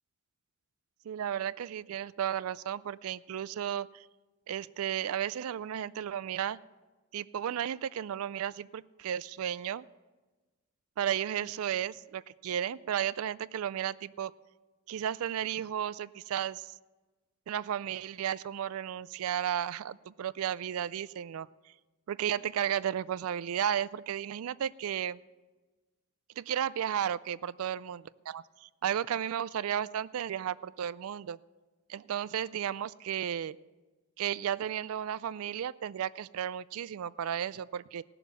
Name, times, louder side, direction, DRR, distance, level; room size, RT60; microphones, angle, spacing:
voice 1, 1.1-4.0 4.5-6.6 7.1-9.9 11.0-14.3 14.9-16.7 17.5-21.5 22.1-25.2 26.4-31.4 31.9-33.6 34.2-38.0, right 9 dB, 75° right, 17 dB, 0.3 m, -34 dB
16.5 x 7.0 x 7.0 m, 1.2 s
head